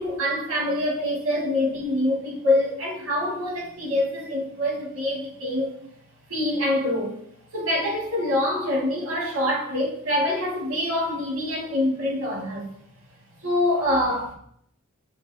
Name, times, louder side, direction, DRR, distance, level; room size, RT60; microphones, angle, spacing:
voice 1, 0.0-5.8 6.3-7.1 7.5-12.7 13.4-14.3, left 1 dB, 85° right, 2.5 m, -25 dB
7.7 x 6.9 x 2.3 m
head